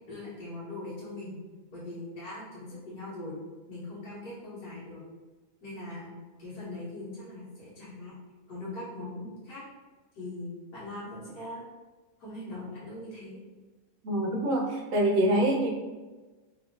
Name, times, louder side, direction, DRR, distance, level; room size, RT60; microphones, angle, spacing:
voice 1, 0.1-1.4 1.7-3.3 3.7-5.0 5.6-8.1 8.5-9.6 10.1-11.6 12.2-13.4, left 2 dB, 70° left, -9 dB, 1.8 m, -41 dB
voice 2, 14.0-15.7, right 1 dB, 65° right, -1 dB, 0.9 m, -25 dB
3.5 x 2.7 x 2.8 m, 1.2 s
omnidirectional pair, 1.7 m